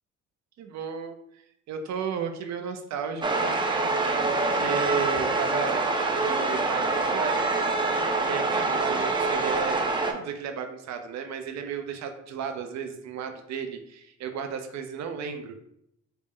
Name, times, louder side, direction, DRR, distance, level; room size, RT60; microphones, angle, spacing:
voice 1, 0.6-1.4 1.7-4.0 4.2-7.4 7.7-7.9 8.2-15.6, right 6 dB, 65° right, 6 dB, 0.6 m, -34 dB
sound 1, 3.2-10.1, right 3 dB, 15° right, 0.5 m, -25 dB
4.1 x 2.1 x 3.6 m, 0.77 s
cardioid pair, 90°, 30 cm